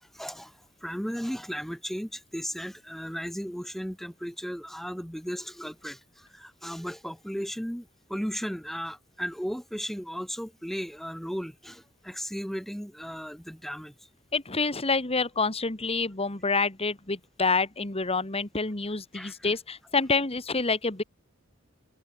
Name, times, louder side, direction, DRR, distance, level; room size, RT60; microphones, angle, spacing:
voice 1, 0.1-13.9 19.1-19.5, equal, ahead, 5.9 m, -36 dB
voice 2, 14.3-21.0, left 4 dB, 30° left, 2.1 m, -27 dB
head